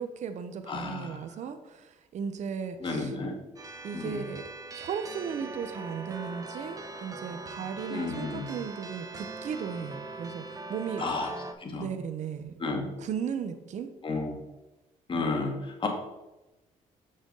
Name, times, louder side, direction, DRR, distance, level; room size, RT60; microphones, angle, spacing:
voice 1, 0.0-3.1 3.8-4.4 4.7-11.1 11.7-12.5 13.0-13.9, right 7 dB, 60° right, 9 dB, 0.9 m, -36 dB
voice 2, 0.7-1.2 2.8-3.4 3.9-4.2 7.9-8.5 11.0-11.3 11.6-11.9 12.6-12.9 14.0-14.4 15.1-15.9, left 3 dB, 35° left, 1 dB, 1.8 m, -32 dB
sound 1, 3.6-11.5, right 3 dB, 25° right, 0.9 m, -41 dB
7.1 x 6.4 x 3.9 m, 1.0 s
cardioid pair, 90°, 14 cm